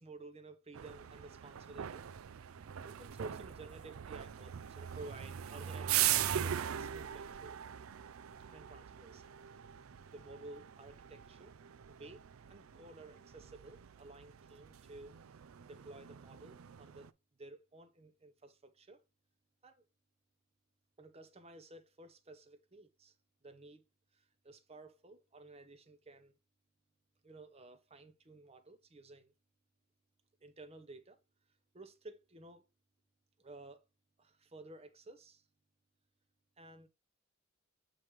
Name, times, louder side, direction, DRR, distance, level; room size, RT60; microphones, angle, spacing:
voice 1, 0.0-2.1 2.8-7.6 8.5-9.3 10.0-11.5 11.9-12.2 12.5-15.2 15.7-17.1 17.4-19.0 19.6-19.9 21.0-23.1 23.4-23.8 24.1-26.4 27.2-29.3 30.4-31.2 31.7-32.7 33.4-33.8 34.2-35.4 36.6-36.9, right 2 dB, 30° right, 0.7 m, -54 dB
sound 1, 0.7-17.1, right 11 dB, 90° right, 0.4 m, -41 dB
7.5 x 3.2 x 4.7 m
head